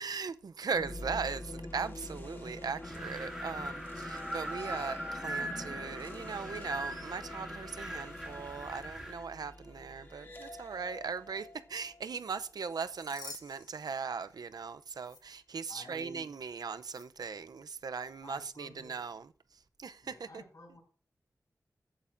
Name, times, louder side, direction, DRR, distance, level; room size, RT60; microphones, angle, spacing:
voice 1, 0.0-19.3 19.8-20.4, right 5 dB, 85° right, 0.5 m, -39 dB
sound 1, 0.7-12.8, left 1 dB, 35° left, 1.4 m, -46 dB
Wind, 2.8-9.2, right 1 dB, 5° right, 2.3 m, -41 dB
sound 2, 12.6-14.6 15.0-15.2 16.8-17.0, left 3 dB, 80° left, 1.9 m, -51 dB
voice 2, 15.7-16.3 18.2-19.2 20.0-20.8, left 1 dB, 55° left, 5.8 m, -52 dB
14.0 x 8.7 x 2.5 m
wide cardioid pair, 95°, 7 cm